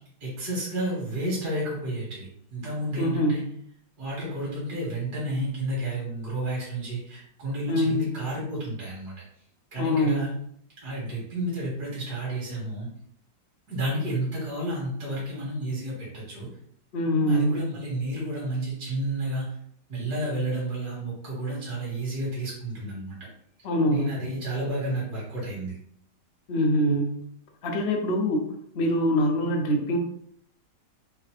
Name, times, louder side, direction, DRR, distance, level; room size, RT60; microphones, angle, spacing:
voice 1, 0.2-3.4 4.0-9.1 9.7-10.3 10.8-12.9 13.7-16.5 17.2-19.5 19.9-23.2 23.9-25.8, right 1 dB, 65° right, -5 dB, 2.3 m, -31 dB
voice 2, 3.0-3.4 7.7-8.0 9.8-10.3 16.9-17.6 23.6-24.2 26.5-27.2 27.6-30.0, equal, 55° left, 1 dB, 0.7 m, -24 dB
5.0 x 2.7 x 3.1 m, 0.66 s
omnidirectional pair, 1.9 m